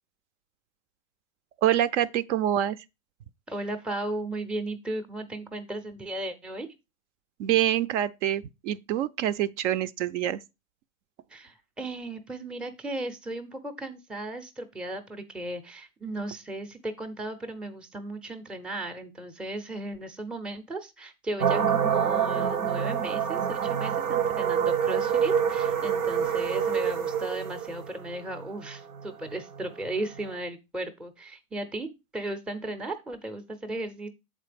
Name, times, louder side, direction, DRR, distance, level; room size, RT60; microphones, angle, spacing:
voice 1, 1.6-2.8 7.4-10.4, right 11 dB, 55° right, 0.5 m, -26 dB
voice 2, 3.5-6.7 11.3-34.1, right 1 dB, ahead, 0.5 m, -36 dB
sound 1, 21.4-30.3, right 8 dB, 85° right, 1.0 m, -27 dB
7.4 x 4.2 x 5.0 m
hypercardioid pair, 130°, 43 cm